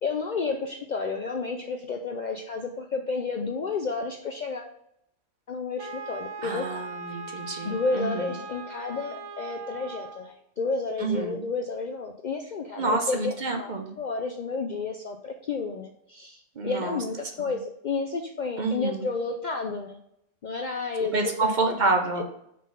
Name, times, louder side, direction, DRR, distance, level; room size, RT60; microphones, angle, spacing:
voice 1, 0.0-4.7 5.5-6.9 7.6-20.0 20.4-21.8 22.2-22.3, left 4 dB, 55° left, 4 dB, 0.5 m, -31 dB
Wind instrument woodwind instrument, 5.8-10.3, right 3 dB, 85° right, 1.0 m, -39 dB
voice 2, 6.4-8.3 11.0-11.4 12.8-13.9 16.6-17.0 17.4-17.5 18.6-19.0 21.1-22.2, right 3 dB, 45° right, 4 dB, 0.7 m, -28 dB
5.1 x 3.8 x 5.5 m, 0.75 s
omnidirectional pair, 1.2 m